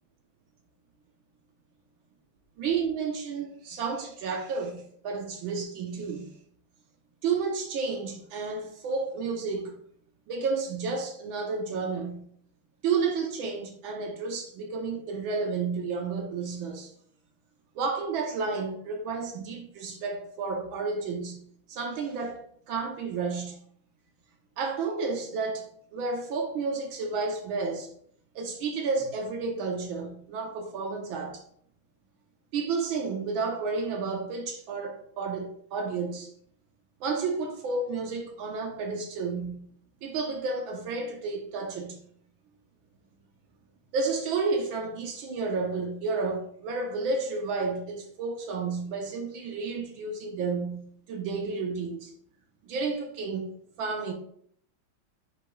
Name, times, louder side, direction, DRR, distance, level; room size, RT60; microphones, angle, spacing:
voice 1, 2.6-6.3 7.2-9.8 10.3-12.2 12.8-16.9 17.8-21.4 21.7-23.6 24.6-27.9 28.4-31.4 32.5-36.3 37.0-39.7 40.0-42.0 43.9-52.1 52.6-54.1, right 4 dB, 75° right, 1.7 m, -31 dB
8.8 x 6.5 x 2.3 m
omnidirectional pair, 2.2 m